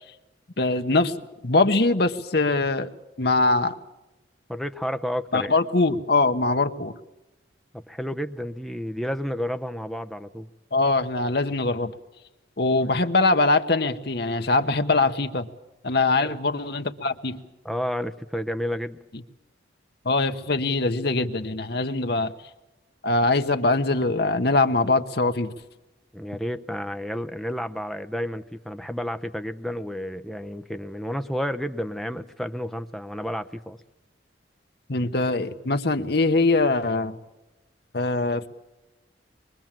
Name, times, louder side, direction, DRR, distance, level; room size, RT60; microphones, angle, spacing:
voice 1, 0.6-1.1 1.4-2.9 3.2-3.7 5.3-6.9 10.7-11.9 12.6-15.5 15.8-17.4 20.0-22.3 23.0-25.5 34.9-37.2 37.9-38.5, left 3 dB, 55° left, 7 dB, 1.1 m, -22 dB
voice 2, 4.5-5.5 7.7-10.5 16.2-16.4 17.6-19.0 26.1-33.8, equal, ahead, 8 dB, 0.8 m, -31 dB
24.0 x 22.5 x 7.5 m, 1.0 s
head